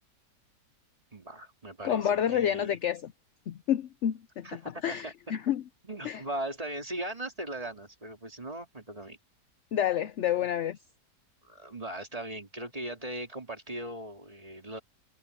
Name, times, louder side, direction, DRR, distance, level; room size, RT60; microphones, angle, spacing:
voice 1, 1.1-2.8 4.4-5.1 5.8-9.2 11.4-14.8, right 1 dB, 20° right, 2.7 m, -39 dB
voice 2, 1.8-3.1 3.5-4.5 4.8-5.6 6.0-6.2 9.7-10.8, left 10 dB, 65° left, 0.7 m, -29 dB
omnidirectional pair, 1.8 m